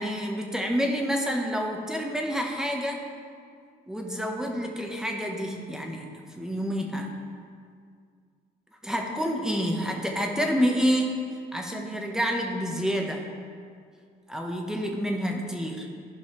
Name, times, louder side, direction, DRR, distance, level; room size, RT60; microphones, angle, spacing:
voice 1, 0.0-3.0 3.9-6.1 6.4-7.1 8.8-11.2 11.5-13.2 14.3-15.9, equal, 5° right, 1 dB, 1.1 m, -28 dB
13.5 x 5.5 x 3.2 m, 2.1 s
cardioid pair, 110°, 17 cm